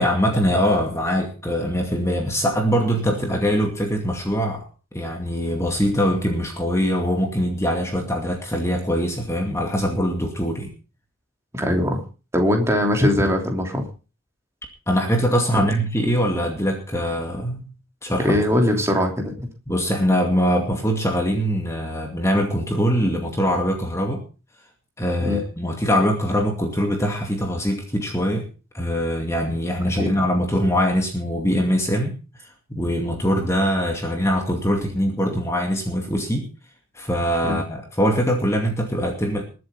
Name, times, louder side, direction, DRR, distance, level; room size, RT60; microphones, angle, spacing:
voice 1, 0.0-4.6 4.9-10.7 14.9-17.7 18.0-18.4 19.7-24.2 25.0-28.5 28.7-32.1 32.7-36.5 36.9-39.4, equal, 15° left, 2 dB, 2.4 m, -22 dB
voice 2, 11.5-12.0 12.3-13.8 15.5-15.7 18.2-19.3 25.2-25.4 30.0-30.1 37.4-37.6, left 1 dB, 15° right, 2 dB, 3.1 m, -21 dB
21.5 x 7.9 x 5.5 m, 0.35 s
head